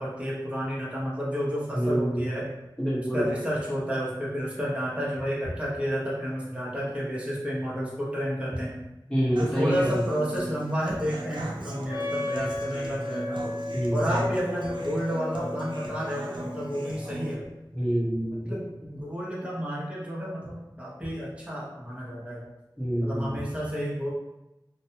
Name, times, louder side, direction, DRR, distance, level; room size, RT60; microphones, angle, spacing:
voice 1, 0.0-2.4 3.1-8.7 9.4-13.4 13.9-17.5 18.5-22.4 23.0-24.1, equal, 15° right, -6 dB, 0.8 m, -31 dB
voice 2, 1.7-2.3 2.8-3.3 9.1-10.0 13.7-14.1 17.7-18.5 22.8-23.4, equal, 10° left, -7 dB, 1.0 m, -26 dB
Human voice / Acoustic guitar, 9.4-17.3, right 1 dB, 85° right, 0.4 m, -38 dB
Wind instrument woodwind instrument, 11.9-17.5, left 2 dB, 90° left, 0.3 m, -35 dB
2.3 x 2.2 x 2.8 m, 0.94 s
wide cardioid pair, 45°, 8 cm